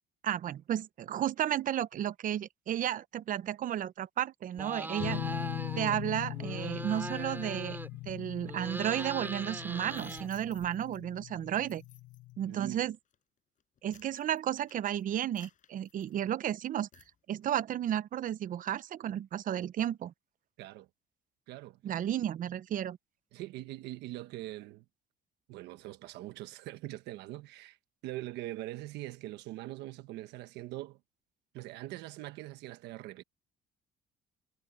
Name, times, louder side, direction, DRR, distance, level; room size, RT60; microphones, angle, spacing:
voice 1, 0.2-5.2 5.8-7.8 8.1-11.8 12.4-13.0 13.8-16.9 17.3-20.1 21.8-23.0, right 11 dB, 50° right, 0.8 m, -33 dB
sound 1, 4.5-6.0 6.3-8.1 8.4-10.7, right 2 dB, 10° right, 5.3 m, -40 dB
sound 2, 5.0-12.6, left 19 dB, 90° left, 6.4 m, -41 dB
sound 3, 9.8-11.0 11.5-12.3 12.9-13.2 13.6-16.5 16.9-17.1, left 8 dB, 50° left, 5.4 m, -60 dB
voice 2, 12.4-12.9 20.6-20.9 21.5-21.8 23.3-24.8 25.5-27.8 28.0-31.0 31.5-33.2, right 16 dB, 90° right, 1.4 m, -42 dB
cardioid pair, 110°, 17 cm